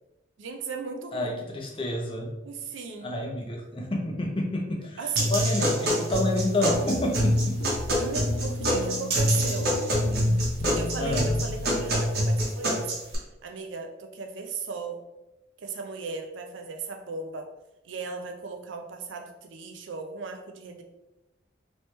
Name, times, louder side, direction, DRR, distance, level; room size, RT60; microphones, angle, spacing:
voice 1, 0.4-1.4 2.4-3.2 5.0-5.3 5.8-6.1 8.0-9.8 10.8-12.9 13.4-15.0 15.6-17.5 17.8-20.8, right 4 dB, 85° right, 4 dB, 0.5 m, -36 dB
voice 2, 1.1-2.3 3.0-7.4 11.0-11.3, left 1 dB, 25° left, 0 dB, 0.5 m, -29 dB
sound 1, 5.2-13.1, equal, 55° right, 1.0 m, -25 dB
sound 2, 6.7-12.1, left 2 dB, 75° left, 0.3 m, -36 dB
3.2 x 3.0 x 3.1 m, 0.97 s
head